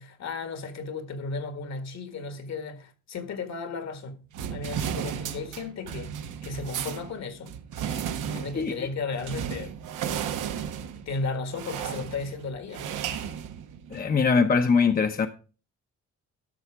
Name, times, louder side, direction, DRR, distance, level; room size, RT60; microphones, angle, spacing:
voice 1, 0.0-7.6 8.3-9.7 11.0-12.9, left 4 dB, 60° left, 1.8 m, -35 dB
sound 1, 4.3-14.1, right 8 dB, 85° right, 1.1 m, -34 dB
voice 2, 13.9-15.3, left 5 dB, 30° left, 0.8 m, -22 dB
12.5 x 6.3 x 4.9 m
cardioid pair, 90°, 30 cm